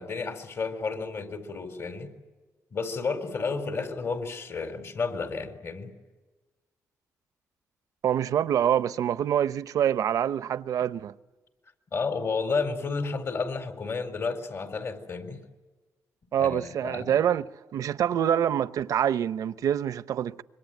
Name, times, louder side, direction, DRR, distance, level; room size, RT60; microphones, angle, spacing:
voice 1, 0.0-2.1 2.7-5.9 11.9-15.4 16.4-17.2, left 4 dB, 55° left, 4.5 m, -31 dB
voice 2, 8.0-11.1 16.3-17.4 17.7-20.4, right 9 dB, 75° right, 0.8 m, -26 dB
26.5 x 24.0 x 9.3 m
cardioid pair, 75°, 6 cm